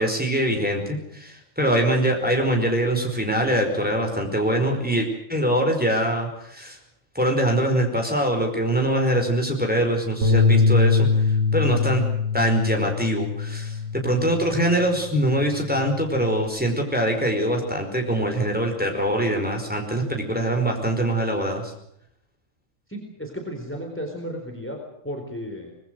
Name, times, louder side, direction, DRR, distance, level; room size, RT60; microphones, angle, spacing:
voice 1, 0.0-6.8 7.1-11.2 11.5-21.7, right 1 dB, 5° right, 2 dB, 4.9 m, -23 dB
Bass guitar, 10.2-14.7 15.1-16.5, left 4 dB, 60° right, 3.1 m, -23 dB
voice 2, 22.9-24.8 25.0-25.7, equal, 10° left, 2 dB, 4.2 m, -33 dB
25.5 x 21.0 x 6.5 m, 0.73 s
omnidirectional pair, 1.4 m